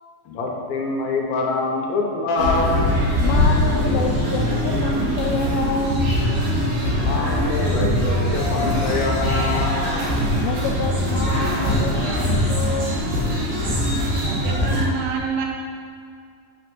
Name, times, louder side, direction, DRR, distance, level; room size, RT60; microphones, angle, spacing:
voice 1, 0.3-2.8 7.0-9.8, left 3 dB, 75° left, -1 dB, 2.6 m, -25 dB
sound 1, 2.4-14.8, equal, 70° right, 3.2 m, -21 dB
voice 2, 3.2-6.1 10.4-13.0, left 5 dB, 90° left, 1 dB, 1.9 m, -28 dB
voice 3, 14.2-15.5, right 6 dB, 85° right, 0 dB, 3.0 m, -28 dB
8.5 x 4.1 x 6.1 m, 2.2 s
omnidirectional pair, 4.5 m